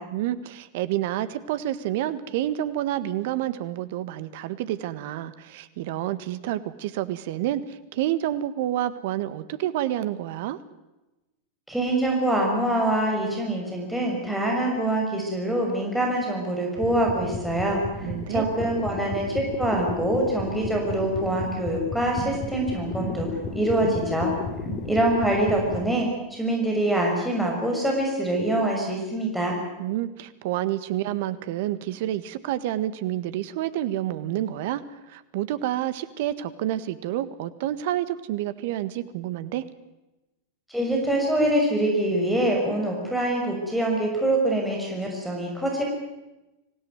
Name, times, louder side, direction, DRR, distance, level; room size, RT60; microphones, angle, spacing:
voice 1, 0.1-10.6 18.0-18.5 29.8-34.8 35.1-39.7, right 13 dB, 60° right, 14 dB, 1.6 m, -29 dB
voice 2, 11.7-23.3 23.5-24.3 24.8-29.6 40.7-45.8, right 1 dB, ahead, -1 dB, 6.3 m, -25 dB
sound 1, 16.8-25.9, left 3 dB, 30° left, 5.4 m, -34 dB
25.5 x 17.0 x 9.6 m, 1.0 s
hypercardioid pair, 95°, 0 cm